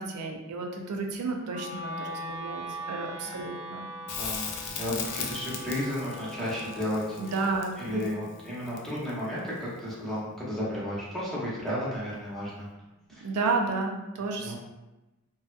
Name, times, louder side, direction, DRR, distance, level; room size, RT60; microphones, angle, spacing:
voice 1, 0.0-3.9 7.2-8.0 13.2-14.6, right 3 dB, 90° right, 2 dB, 0.4 m, -32 dB
Wind instrument woodwind instrument, 1.5-11.6, equal, 40° right, 0.5 m, -42 dB
Crackle, 4.1-9.2 11.9-12.0, left 6 dB, 70° left, 0.4 m, -38 dB
voice 2, 4.1-7.5 7.8-12.7 13.1-13.3 14.4-14.6, equal, ahead, -8 dB, 0.7 m, -33 dB
2.6 x 2.2 x 2.3 m, 1.0 s
head